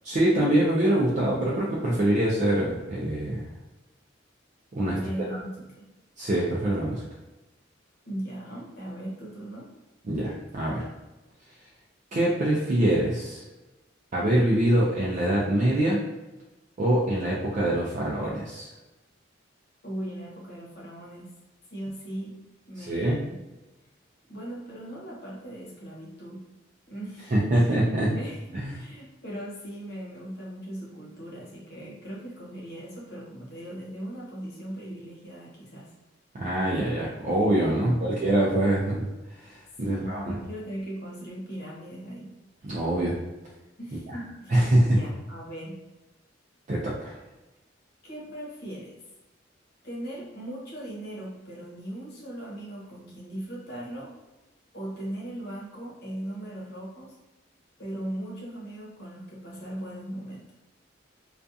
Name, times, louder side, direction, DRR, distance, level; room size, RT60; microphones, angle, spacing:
voice 1, 0.1-3.4 4.7-5.0 5.3-5.4 6.2-7.0 10.1-10.9 12.1-13.4 14.1-16.0 16.8-18.7 22.8-23.2 27.3-28.1 28.5-28.7 36.3-39.1 39.4-40.4 42.6-43.2 44.5-45.0 46.7-47.2, right 1 dB, 40° right, -5 dB, 0.4 m, -24 dB
voice 2, 4.9-5.7 8.0-9.7 19.8-21.3 21.7-23.4 24.3-26.4 26.9-27.7 28.1-35.9 37.8-38.1 39.8-42.3 43.8-45.8 48.0-49.0 49.8-54.1 54.7-57.2 57.8-60.5, right 1 dB, 55° left, -5 dB, 0.9 m, -38 dB
2.4 x 2.3 x 2.6 m, 1.1 s
head